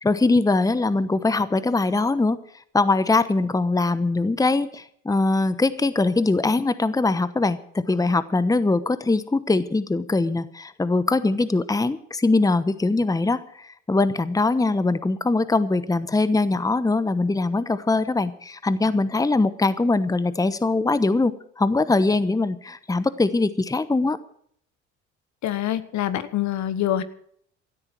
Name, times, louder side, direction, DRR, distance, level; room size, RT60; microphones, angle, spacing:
voice 1, 0.0-2.4 2.7-24.2, left 3 dB, 10° left, 14 dB, 1.0 m, -22 dB
voice 2, 25.4-27.0, left 12 dB, 60° left, 13 dB, 1.4 m, -25 dB
18.0 x 13.0 x 4.6 m, 0.64 s
hypercardioid pair, 65°, 32 cm